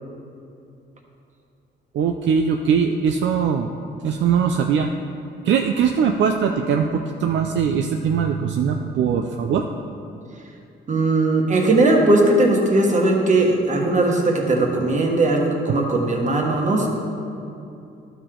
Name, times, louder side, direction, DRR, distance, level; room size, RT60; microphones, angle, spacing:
voice 1, 1.9-3.7 4.0-4.9 5.4-9.6, right 7 dB, 70° right, 4 dB, 0.4 m, -21 dB
voice 2, 10.9-16.9, right 2 dB, 40° right, 0 dB, 1.3 m, -18 dB
11.5 x 4.8 x 3.8 m, 2.7 s
cardioid pair, 90°, 20 cm